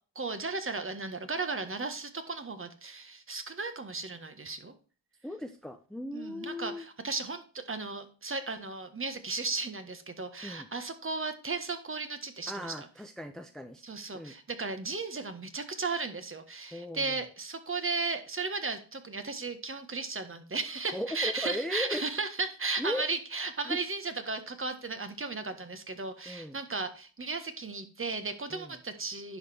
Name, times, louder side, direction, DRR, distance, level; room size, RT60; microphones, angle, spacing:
voice 1, 0.1-4.7 6.1-12.9 13.8-29.4, right 4 dB, 25° right, 9 dB, 1.5 m, -35 dB
voice 2, 5.2-6.8 10.4-10.7 12.5-13.8 14.1-14.3 16.7-17.2 20.9-22.0 22.8-23.1 23.7-23.8 26.3-26.6 28.5-28.8, left 1 dB, ahead, 7 dB, 0.8 m, -37 dB
10.5 x 5.1 x 4.3 m, 0.38 s
supercardioid pair, 55°, 48 cm